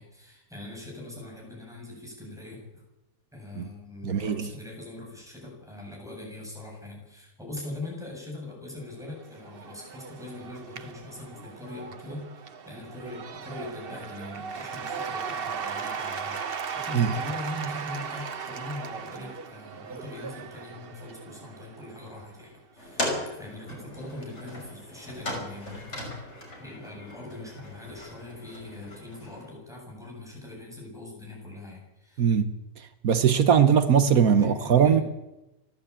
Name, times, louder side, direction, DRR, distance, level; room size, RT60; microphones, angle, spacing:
voice 1, 0.0-2.8 3.3-26.2 26.6-32.3 34.4-35.0, left 1 dB, ahead, 8.0 m, -41 dB
voice 2, 4.0-4.5 16.9-17.1 32.2-32.5 33.0-35.0, right 8 dB, 80° right, 1.5 m, -20 dB
Cheering / Applause / Crowd, 9.0-22.5, right 6 dB, 45° right, 1.1 m, -37 dB
sound 1, 22.8-29.5, left 1 dB, 50° left, 6.5 m, -37 dB
30.0 x 12.0 x 8.6 m
omnidirectional pair, 1.5 m